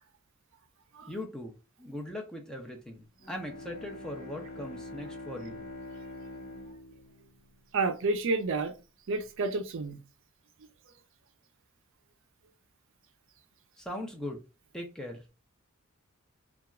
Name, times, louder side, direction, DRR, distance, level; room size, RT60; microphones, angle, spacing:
voice 1, 1.1-5.7 13.8-14.4 14.7-15.2, left 1 dB, 5° left, 0.4 m, -40 dB
Bowed string instrument, 3.2-8.3, left 1 dB, 65° left, 0.8 m, -45 dB
voice 2, 7.7-8.7 9.1-10.0, right 3 dB, 60° right, 0.4 m, -30 dB
2.9 x 2.2 x 2.4 m
head